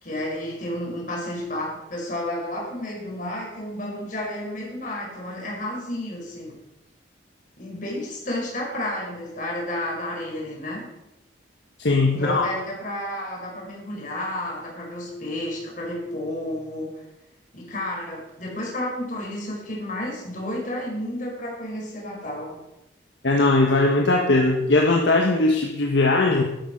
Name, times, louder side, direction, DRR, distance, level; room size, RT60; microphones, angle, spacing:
voice 1, 0.0-6.6 7.6-10.9 12.1-17.0 17.5-22.6, left 1 dB, 40° left, -2 dB, 5.3 m, -31 dB
voice 2, 11.8-12.5 23.2-26.4, left 2 dB, 65° left, 0 dB, 1.5 m, -19 dB
12.5 x 11.5 x 5.4 m, 0.93 s
head